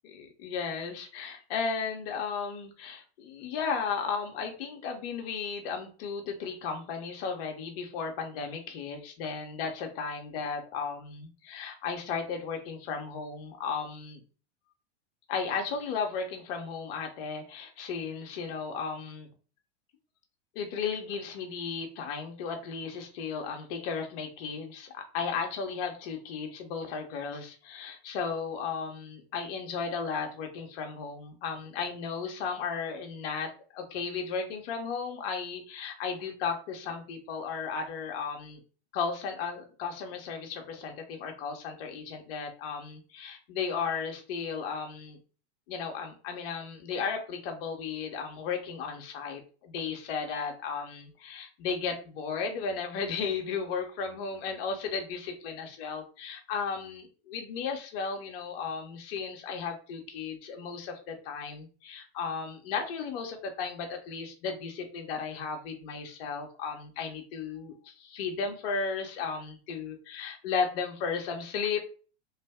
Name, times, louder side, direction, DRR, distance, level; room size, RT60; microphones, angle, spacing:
voice 1, 0.0-14.2 15.3-19.3 20.5-38.6 38.9-45.2 45.7-71.8, left 5 dB, 55° left, 3 dB, 1.1 m, -35 dB
3.2 x 2.5 x 3.5 m, 0.37 s
hypercardioid pair, 95°, 34 cm